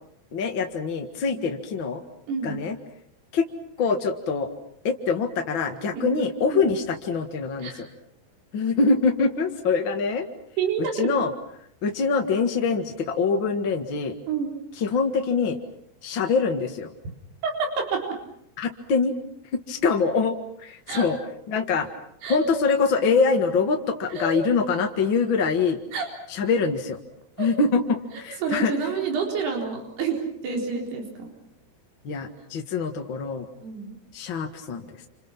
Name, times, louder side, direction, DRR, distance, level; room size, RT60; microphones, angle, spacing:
voice 1, 0.3-2.0 2.4-2.8 3.3-3.4 3.8-4.5 4.8-7.9 8.5-10.3 10.9-11.3 11.8-14.1 14.8-15.6 16.0-16.9 18.6-19.1 19.7-21.2 21.5-21.9 22.3-25.8 26.3-27.0 27.4-28.7 32.0-33.5 34.1-34.9, left 4 dB, 50° left, 3 dB, 1.5 m, -24 dB
voice 2, 2.3-2.6 5.9-6.1 6.5-6.6 7.6-7.8 10.6-11.1 14.3-14.5 17.4-18.1 20.9-21.1 22.2-22.5 24.1-24.4 25.9-26.1 27.4-27.5 28.4-30.2 30.4-31.3 33.6-34.0, right 5 dB, 70° right, 1 dB, 6.2 m, -28 dB
29.5 x 28.5 x 6.0 m, 0.70 s
omnidirectional pair, 4.8 m